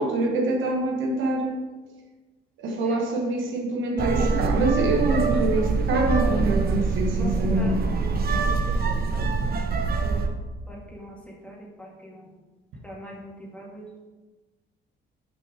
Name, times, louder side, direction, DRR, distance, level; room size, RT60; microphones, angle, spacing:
voice 1, 0.0-1.6 2.6-7.8, right 2 dB, 80° right, 1 dB, 1.3 m, -25 dB
voice 2, 4.0-4.4 5.5-6.0 7.2-8.5 10.0-10.2 10.7-11.1 11.4-11.9 12.8-13.9, right 1 dB, 5° left, -3 dB, 1.9 m, -39 dB
sound 1, 4.0-10.3, right 4 dB, 50° right, 0.9 m, -24 dB
6.2 x 5.5 x 4.9 m, 1.2 s
cardioid pair, 90°, 20 cm